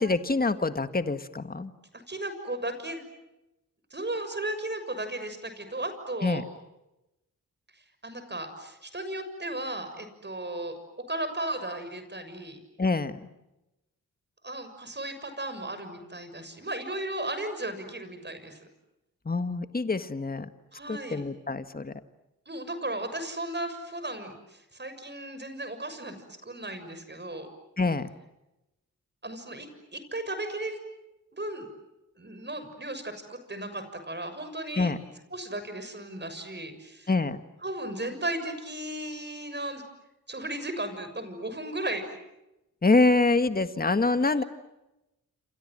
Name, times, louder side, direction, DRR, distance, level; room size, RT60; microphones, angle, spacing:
voice 1, 0.0-1.7 6.2-6.4 12.8-13.3 19.3-20.5 20.9-21.9 27.8-28.1 34.8-35.0 37.1-37.4 42.8-44.4, left 3 dB, 25° left, 10 dB, 1.6 m, -25 dB
voice 2, 2.1-3.0 3.9-6.4 8.0-12.6 14.4-18.6 20.7-21.2 22.5-27.5 29.2-30.8 31.3-31.7 32.2-34.9 35.3-37.1 37.6-39.8 40.3-42.2 44.3-44.5, right 1 dB, 30° right, 9 dB, 6.6 m, -35 dB
28.0 x 27.5 x 7.7 m, 0.94 s
cardioid pair, 60°, 34 cm